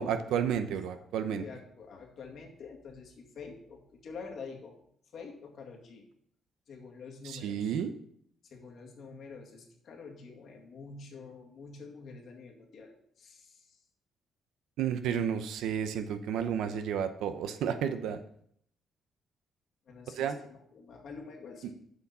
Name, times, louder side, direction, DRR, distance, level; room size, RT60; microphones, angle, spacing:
voice 1, 0.0-1.4 7.2-7.9 14.8-18.2 20.2-20.4, right 8 dB, 85° right, 9 dB, 0.7 m, -31 dB
voice 2, 0.9-4.8 5.1-6.1 6.7-7.8 8.4-13.8 19.9-21.7, left 4 dB, 65° left, 0 dB, 2.1 m, -47 dB
7.7 x 6.1 x 5.5 m, 0.69 s
cardioid pair, 90°, 0 cm